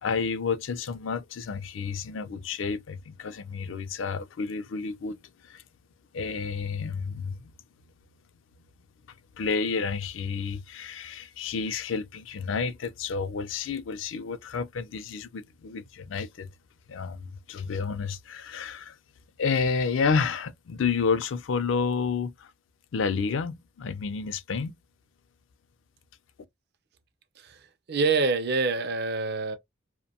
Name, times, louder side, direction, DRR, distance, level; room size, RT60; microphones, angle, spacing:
voice 1, 0.0-5.6 6.1-7.5 9.4-16.5 16.9-19.0 19.4-22.5 22.9-24.8, left 5 dB, 75° left, 0.4 m, -30 dB
voice 2, 27.9-29.6, right 4 dB, 60° right, 0.5 m, -26 dB
2.6 x 2.1 x 2.7 m
head